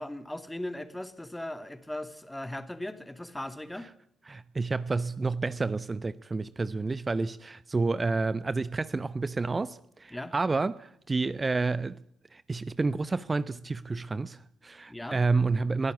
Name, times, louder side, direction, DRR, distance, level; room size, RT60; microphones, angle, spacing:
voice 1, 0.0-3.9 10.1-10.3 14.9-15.2, left 1 dB, 10° left, 2.5 m, -38 dB
voice 2, 4.3-12.0 12.3-15.9, right 3 dB, 30° right, 0.8 m, -29 dB
22.5 x 16.5 x 8.5 m
figure-of-eight pair, 40°, 0 cm